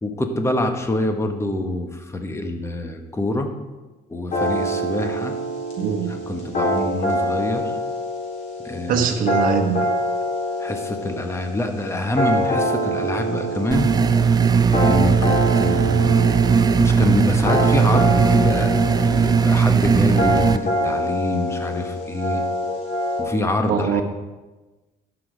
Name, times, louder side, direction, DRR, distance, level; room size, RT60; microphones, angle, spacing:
voice 1, 0.0-3.5 4.1-5.3 6.1-7.7 8.6-9.0 10.6-13.9 14.8-16.2 16.8-18.7 19.0-22.4 23.2-24.0, left 1 dB, 15° left, 6 dB, 1.2 m, -25 dB
sound 1, 4.3-23.2, equal, 50° left, 3.8 m, -25 dB
voice 2, 5.8-6.1 8.9-9.9 23.7-24.0, right 6 dB, 55° right, 2 dB, 1.2 m, -21 dB
sound 2, 13.7-20.6, right 6 dB, 25° right, 0.4 m, -18 dB
11.5 x 6.1 x 5.0 m, 1.2 s
cardioid pair, 110°, 17 cm